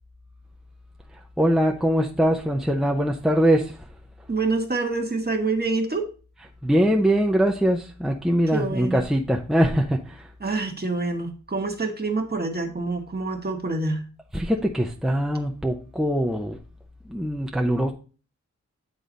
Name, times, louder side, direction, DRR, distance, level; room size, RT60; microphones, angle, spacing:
voice 1, 1.1-3.9 6.6-10.3 14.3-16.6 17.1-17.9, equal, ahead, 1 dB, 0.6 m, -22 dB
voice 2, 4.3-6.1 8.5-9.0 10.4-14.0, right 3 dB, 30° right, 4 dB, 1.2 m, -26 dB
8.5 x 3.9 x 3.9 m, 0.36 s
wide cardioid pair, 95°, 30 cm